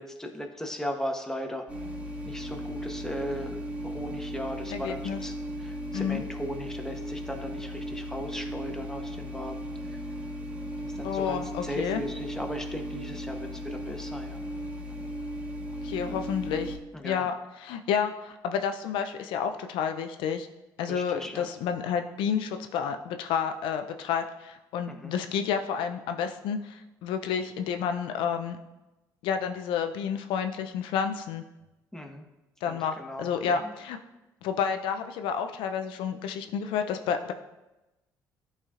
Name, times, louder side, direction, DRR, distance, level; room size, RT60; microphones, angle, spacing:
voice 1, 0.0-1.7 2.2-5.3 5.6-9.6 9.8-10.0 10.8-14.5 16.1-16.2 16.9-17.3 20.9-21.5 24.9-25.1 31.9-32.2 32.7-33.7, equal, 5° left, 3 dB, 1.1 m, -37 dB
sound 1, 1.7-16.8, equal, 15° right, 1.4 m, -36 dB
voice 2, 4.7-5.2 5.9-6.2 11.0-12.0 15.8-16.8 17.0-17.3 17.6-20.5 20.8-28.6 29.2-31.4 32.6-34.0 34.4-37.3, left 7 dB, 75° left, 7 dB, 0.4 m, -30 dB
11.0 x 4.2 x 2.4 m, 1.0 s
supercardioid pair, 65°, 9 cm